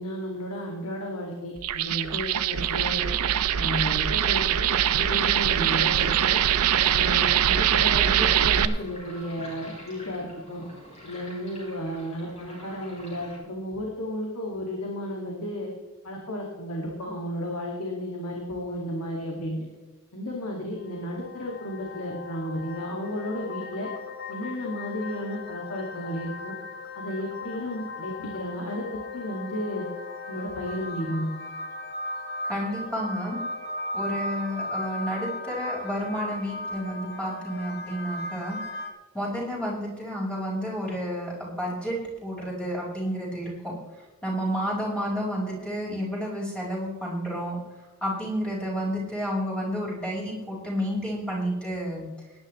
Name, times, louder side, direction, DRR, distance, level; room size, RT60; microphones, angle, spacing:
voice 1, 0.0-3.0 3.6-6.4 6.9-10.6 11.0-15.7 16.0-19.7 20.1-23.9 24.3-26.5 26.9-29.9 30.3-31.3, equal, 90° left, -1 dB, 2.3 m, -33 dB
sound 1, 1.6-8.7, right 10 dB, 85° right, 0.6 m, -23 dB
Sink (filling or washing), 4.7-13.4, equal, 30° left, 4.3 m, -45 dB
sound 2, 20.8-38.9, left 2 dB, 50° left, 1.6 m, -37 dB
voice 2, 32.4-33.4 33.9-38.6 39.1-43.7 44.2-47.6 48.0-52.0, equal, 5° left, -6 dB, 5.1 m, -30 dB
19.0 x 11.0 x 3.2 m, 1.2 s
head